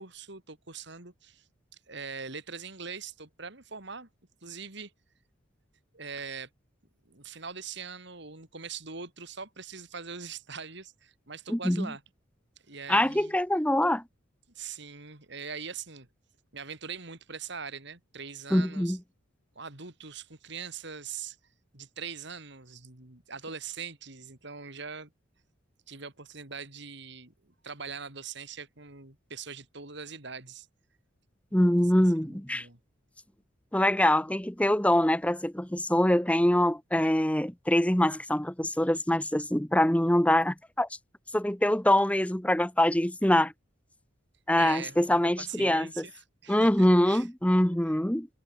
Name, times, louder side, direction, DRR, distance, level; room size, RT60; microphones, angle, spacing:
voice 1, 0.0-1.5 1.9-4.1 4.4-4.9 5.9-6.5 7.1-12.0 12.7-13.4 14.5-16.1 16.5-19.0 19.6-21.4 21.7-25.1 25.9-30.7 31.5-31.7 32.2-32.8 44.6-47.3, right 5 dB, 60° right, 3.5 m, -42 dB
voice 2, 11.5-11.9 12.9-14.0 18.5-19.0 31.5-32.7 33.7-40.9 41.3-43.5 44.5-46.0 46.5-48.3, left 1 dB, 5° left, 1.1 m, -24 dB
head